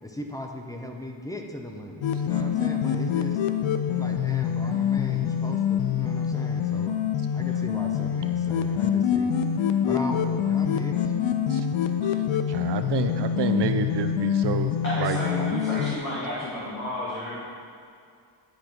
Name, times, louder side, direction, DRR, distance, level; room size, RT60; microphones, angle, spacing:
voice 1, 0.0-3.4 3.9-7.0 7.3-9.3 9.8-11.2, left 1 dB, 10° left, 2 dB, 0.4 m, -37 dB
sound 1, 2.0-16.0, left 8 dB, 65° left, 0.5 m, -25 dB
voice 2, 12.5-14.7 15.0-15.2, right 7 dB, 60° right, 9 dB, 0.5 m, -29 dB
voice 3, 14.5-17.3, left 1 dB, 40° left, -11 dB, 2.1 m, -32 dB
10.5 x 4.9 x 4.4 m, 2.3 s
wide cardioid pair, 170°, 48 cm